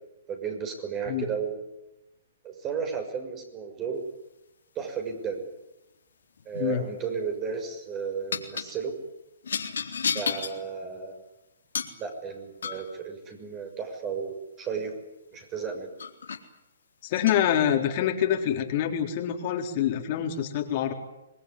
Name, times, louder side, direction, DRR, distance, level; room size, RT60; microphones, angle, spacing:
voice 1, 0.3-1.6 2.4-4.0 4.7-5.4 6.4-8.9 10.1-11.2 12.0-14.9 15.3-15.9, right 6 dB, 20° right, 5 dB, 6.3 m, -33 dB
sound 1, 6.4-6.7 8.3-8.7 9.4-10.6 11.7-12.0 12.6-12.9 15.3-15.4 16.0-16.4 17.1-17.4, left 6 dB, 80° left, 4.0 m, -32 dB
voice 2, 17.0-20.9, left 10 dB, 40° left, 3 dB, 3.8 m, -26 dB
26.0 x 20.5 x 9.8 m, 0.94 s
hypercardioid pair, 145°, 0 cm